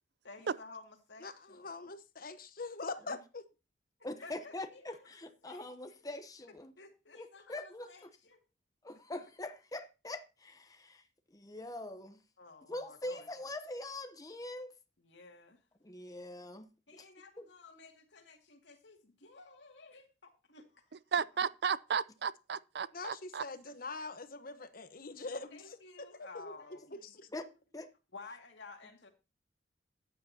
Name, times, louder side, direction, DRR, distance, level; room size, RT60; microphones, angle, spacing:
voice 1, 0.2-1.9 4.2-5.1 5.4-6.0 6.8-8.4 12.4-13.3 15.0-15.6 16.9-20.9 25.5-27.1 28.1-29.1, left 3 dB, 85° left, 2.3 m, -54 dB
voice 2, 1.2-3.4 22.9-26.5 27.0-27.3, left 3 dB, 55° left, 1.1 m, -43 dB
voice 3, 4.0-6.7 7.2-8.1 8.8-11.0 11.3-12.2 12.7-14.7 15.8-17.1 17.4-17.5 27.3-27.5 27.7-27.9, left 2 dB, 20° left, 0.9 m, -43 dB
voice 4, 21.1-23.4, right 6 dB, 65° right, 0.5 m, -34 dB
13.5 x 9.4 x 2.9 m
head